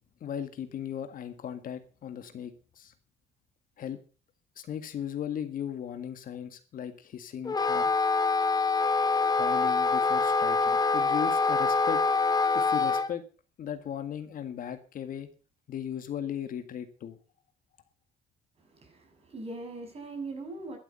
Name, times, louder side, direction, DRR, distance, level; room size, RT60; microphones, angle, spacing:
voice 1, 0.2-2.9 3.8-4.0 4.6-7.9 9.3-12.0 12.5-13.2 13.6-15.3 15.7-17.2, left 9 dB, 55° left, 1.8 m, -37 dB
Wind instrument woodwind instrument, 7.4-13.1, left 4 dB, 25° left, 1.2 m, -25 dB
voice 2, 18.7-20.8, right 3 dB, 35° right, 6.8 m, -40 dB
12.0 x 12.0 x 5.6 m
cardioid pair, 110°, 17 cm